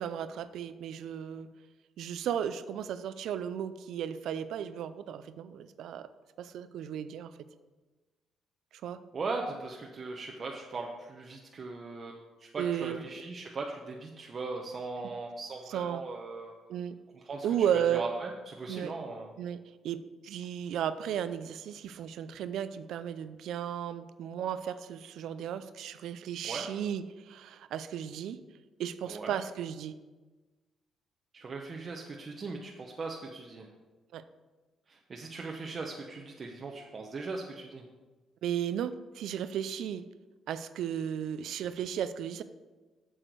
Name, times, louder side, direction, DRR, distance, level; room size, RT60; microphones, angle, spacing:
voice 1, 0.0-1.5 2.0-6.1 6.4-7.3 8.8-9.0 12.6-13.0 15.7-16.0 16.7-17.0 17.4-18.0 18.7-18.9 19.4-28.4 28.8-30.0 34.1-34.2 38.4-40.1 40.5-42.4, right 9 dB, 80° right, 13 dB, 0.4 m, -34 dB
voice 2, 9.1-16.5 17.2-17.5 17.7-19.3 26.4-26.7 29.1-29.4 31.3-33.7 34.9-37.8, right 3 dB, 45° right, 0 dB, 0.8 m, -39 dB
7.8 x 6.4 x 4.6 m, 1.2 s
cardioid pair, 90°, 0 cm